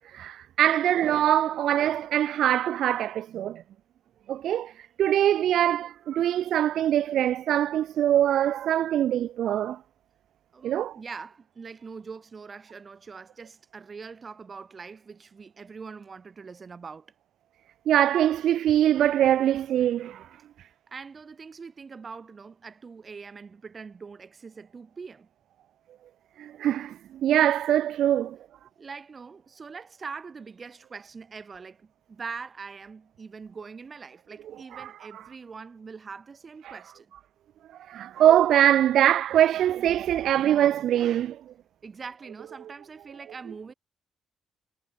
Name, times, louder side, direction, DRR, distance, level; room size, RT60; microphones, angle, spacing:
voice 1, 0.1-3.6 4.3-4.7 5.0-9.8 10.6-11.0 17.9-20.2 26.4-27.0 27.2-28.4 34.7-34.9 37.9-41.4, right 11 dB, 75° right, 0.7 m, -23 dB
voice 2, 10.5-17.1 20.9-25.3 28.8-37.1 41.8-43.7, right 5 dB, 40° right, 7.0 m, -43 dB
cardioid pair, 85°, 0 cm